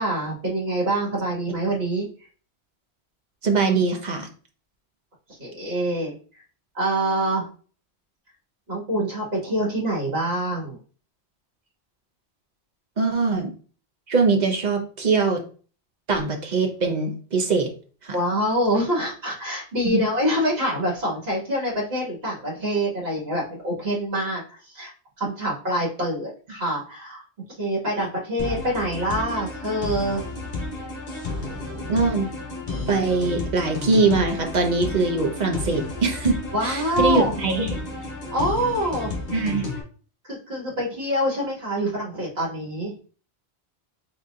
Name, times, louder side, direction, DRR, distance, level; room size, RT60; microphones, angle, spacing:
voice 1, 0.0-2.3 5.3-6.4 6.7-7.5 8.7-10.8 18.1-24.9 25.2-27.2 27.5-30.2 36.5-37.3 38.3-39.1 40.2-43.0, right 1 dB, 65° right, -3 dB, 2.1 m, -25 dB
voice 2, 3.4-4.3 13.0-13.5 14.1-15.4 16.1-17.7 18.0-18.1 19.8-20.0 31.9-32.3 32.9-36.4 36.6-37.7 39.3-39.7, right 3 dB, 45° right, 3 dB, 1.0 m, -22 dB
sound 1, 28.4-39.8, left 2 dB, 40° left, 1.3 m, -32 dB
4.2 x 4.2 x 2.5 m, 0.39 s
omnidirectional pair, 1.1 m